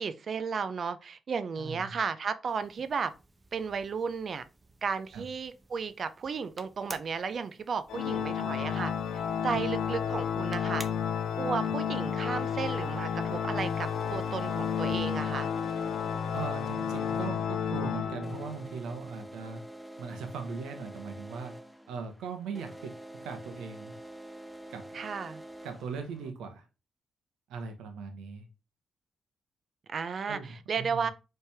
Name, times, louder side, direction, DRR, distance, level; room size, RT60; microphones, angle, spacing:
voice 1, 0.0-3.1 3.5-4.5 4.8-8.9 9.4-10.8 11.4-15.5 24.9-25.4 29.9-31.1, right 5 dB, 60° right, 0.4 m, -34 dB
voice 2, 1.6-2.0 5.1-5.3 9.5-9.6 16.3-19.6 20.0-21.5 21.9-23.9 24.7-25.0 25.6-26.6 27.5-28.4 30.3-31.1, right 5 dB, 90° right, 0.9 m, -39 dB
sound 1, 2.5-15.2, right 2 dB, 30° right, 0.8 m, -53 dB
Organ, 7.9-18.7, left 7 dB, 85° left, 0.4 m, -31 dB
sound 2, 11.4-26.3, right 1 dB, 5° left, 0.6 m, -47 dB
4.3 x 3.3 x 3.3 m
supercardioid pair, 55°, 0 cm